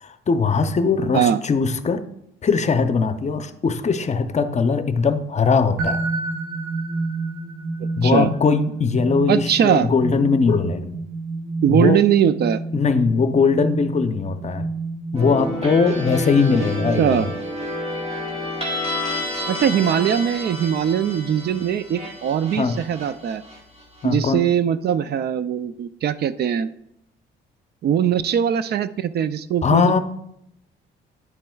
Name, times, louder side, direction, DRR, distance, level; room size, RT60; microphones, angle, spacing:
voice 1, 0.0-2.0 2.4-6.0 7.9-11.0 11.7-12.0 12.7-14.7 15.1-17.3 22.6-22.8 24.0-24.4 29.6-30.0, left 5 dB, 35° left, 10 dB, 0.6 m, -20 dB
sound 1, 5.8-17.5, right 3 dB, 80° right, 1.1 m, -30 dB
voice 2, 9.3-9.9 11.6-12.6 17.0-17.3 19.5-23.4 24.0-26.7 27.8-29.9, right 9 dB, 55° right, 14 dB, 0.4 m, -21 dB
sound 2, 15.1-24.0, left 1 dB, 30° right, 2.4 m, -29 dB
9.7 x 7.6 x 2.3 m, 0.77 s
cardioid pair, 90°, 20 cm